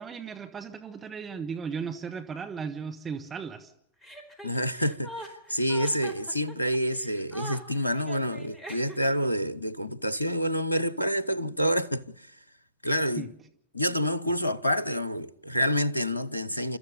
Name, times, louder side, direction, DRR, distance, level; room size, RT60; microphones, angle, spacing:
voice 1, 0.0-3.7 13.2-13.3, right 6 dB, 20° right, 1.5 m, -36 dB
Chuckle chortle, 4.0-9.2, right 1 dB, 10° left, 4.2 m, -42 dB
voice 2, 4.4-12.3 12.8-13.3 13.7-16.8, equal, 85° left, 0.8 m, -28 dB
29.5 x 14.0 x 6.9 m
figure-of-eight pair, 90°, 0 cm